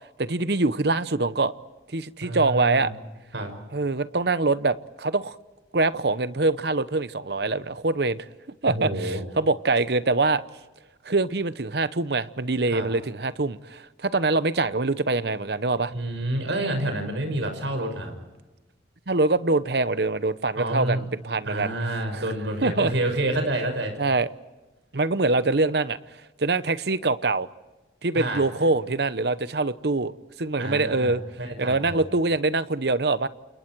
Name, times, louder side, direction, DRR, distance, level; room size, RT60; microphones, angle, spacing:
voice 1, 0.2-1.5 1.9-2.9 3.7-5.4 5.7-8.3 8.6-10.4 11.0-15.9 19.1-21.7 22.1-22.2 22.6-22.9 24.0-24.3 24.9-26.0 26.4-27.5 28.0-30.1 30.4-31.2 31.6-33.3, right 3 dB, 60° right, 0.9 m, -24 dB
voice 2, 2.2-2.9 3.3-3.5 8.7-9.2 12.7-12.9 15.9-18.1 20.5-21.1 21.4-23.9 28.1-28.4 30.6-32.0, right 1 dB, 75° right, 6.1 m, -28 dB
29.0 x 28.5 x 4.7 m
head